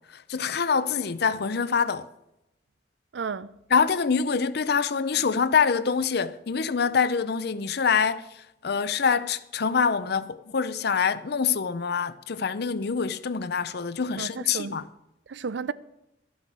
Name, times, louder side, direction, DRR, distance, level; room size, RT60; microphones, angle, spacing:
voice 1, 0.1-2.1 3.7-8.2 8.6-14.9, left 6 dB, 60° left, 0.6 m, -25 dB
voice 2, 3.1-3.6 14.1-14.8 15.3-15.7, right 5 dB, 75° right, 0.5 m, -33 dB
12.5 x 8.2 x 6.1 m
head